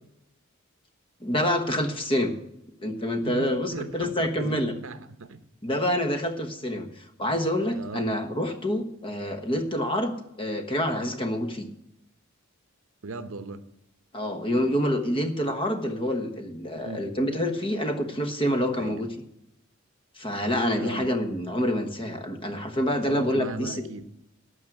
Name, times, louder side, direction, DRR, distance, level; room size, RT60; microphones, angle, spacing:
voice 1, 1.2-2.3 2.8-4.7 5.6-10.1 10.4-11.7 14.1-19.1 20.2-23.8, equal, 25° left, 7 dB, 1.1 m, -27 dB
voice 2, 3.2-5.4 7.7-8.1 13.0-13.6 16.7-17.1 18.8-19.0 20.8-21.1 23.1-24.1, right 3 dB, 65° right, 12 dB, 0.8 m, -38 dB
12.0 x 6.4 x 7.7 m, 0.83 s
head